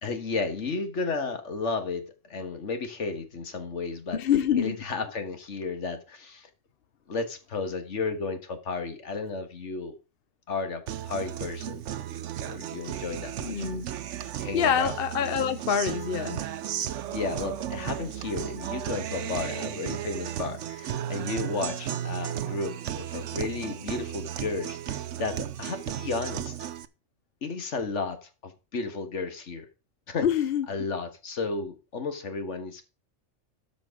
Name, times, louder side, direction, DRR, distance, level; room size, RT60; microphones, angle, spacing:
voice 1, 0.0-4.2 4.6-6.5 7.1-10.0 10.5-11.8 12.4-13.7 14.4-14.9 17.1-26.6 27.4-29.7 30.1-30.3 30.7-32.8, left 4 dB, 75° left, 1.8 m, -33 dB
voice 2, 4.1-4.8 13.4-13.9 14.5-16.4 30.2-30.7, left 8 dB, 55° left, 0.8 m, -26 dB
Guitar, 10.9-26.8, right 10 dB, 80° right, 1.0 m, -34 dB
13.0 x 5.1 x 4.9 m
omnidirectional pair, 1.2 m